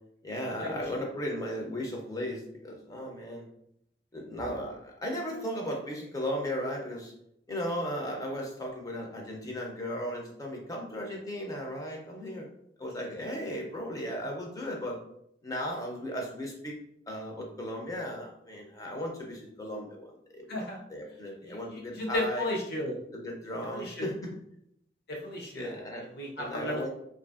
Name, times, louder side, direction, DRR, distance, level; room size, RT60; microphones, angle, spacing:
voice 1, 0.2-3.5 4.1-7.1 7.5-12.5 12.8-15.0 15.4-16.8 17.1-20.6 20.9-22.5 23.1-24.4 25.5-26.1 26.4-26.9, equal, 20° left, 0 dB, 0.5 m, -36 dB
voice 2, 20.5-20.8 21.4-23.0 23.7-24.0 25.1-26.9, left 1 dB, 65° left, -1 dB, 0.7 m, -34 dB
2.6 x 2.5 x 2.4 m, 0.73 s
head